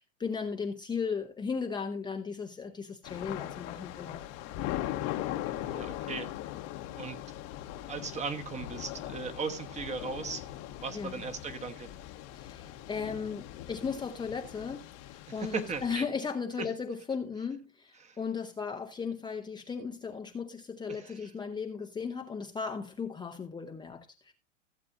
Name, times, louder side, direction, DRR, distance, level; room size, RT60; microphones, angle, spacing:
voice 1, 0.0-4.2 10.9-11.1 12.3-24.3, left 5 dB, 10° left, 0.7 m, -36 dB
Thunder / Rain, 3.0-16.0, left 13 dB, 45° left, 1.1 m, -40 dB
voice 2, 5.6-6.3 7.0-7.2 7.9-10.4 10.8-11.9 15.4-16.0 16.6-16.7 18.0-18.2 20.9-21.2, right 5 dB, 20° right, 1.2 m, -37 dB
16.0 x 7.4 x 2.6 m
hypercardioid pair, 120°, 37 cm